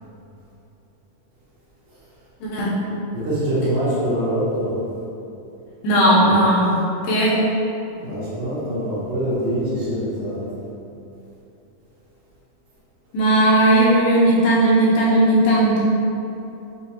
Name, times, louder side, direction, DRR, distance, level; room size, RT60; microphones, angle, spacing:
voice 1, 2.4-2.8 5.8-6.7 7.0-7.3 13.1-15.7, right 1 dB, 75° left, -7 dB, 2.5 m, -16 dB
voice 2, 3.1-4.7 8.0-10.5, right 1 dB, 70° right, -14 dB, 2.6 m, -24 dB
7.2 x 2.5 x 2.8 m, 2.8 s
omnidirectional pair, 4.3 m